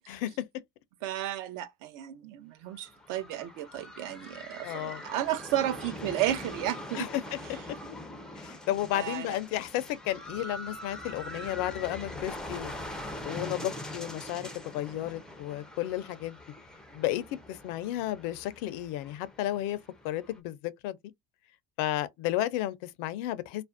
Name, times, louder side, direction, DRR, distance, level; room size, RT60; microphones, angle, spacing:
voice 1, 1.0-7.1 8.9-9.4, right 12 dB, 55° right, 0.5 m, -33 dB
sound 1, 2.7-20.4, left 1 dB, ahead, 0.4 m, -43 dB
voice 2, 4.6-5.0 6.9-7.1 8.3-12.7 13.2-14.5 14.7-16.4 16.9-19.8 20.0-20.6 20.8-21.0 21.8-23.6, left 13 dB, 60° left, 0.5 m, -33 dB
2.4 x 2.1 x 2.4 m
supercardioid pair, 110°, 39 cm